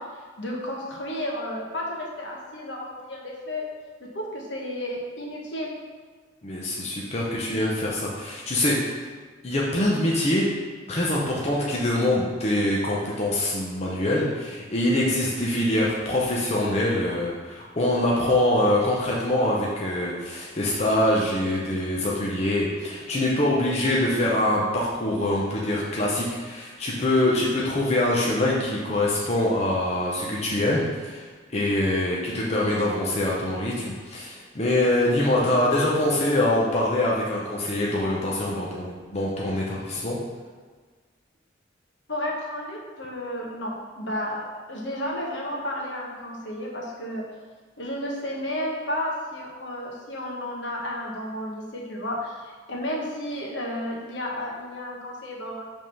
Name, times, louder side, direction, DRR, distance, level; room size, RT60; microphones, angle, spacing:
voice 1, 0.0-3.7 4.0-5.7 42.1-47.2 47.8-55.6, left 1 dB, 70° left, -2 dB, 1.2 m, -32 dB
voice 2, 6.4-8.8 9.4-10.5 10.9-31.3 31.5-40.2, left 1 dB, 35° left, -4 dB, 0.7 m, -24 dB
5.4 x 3.6 x 5.4 m, 1.5 s
head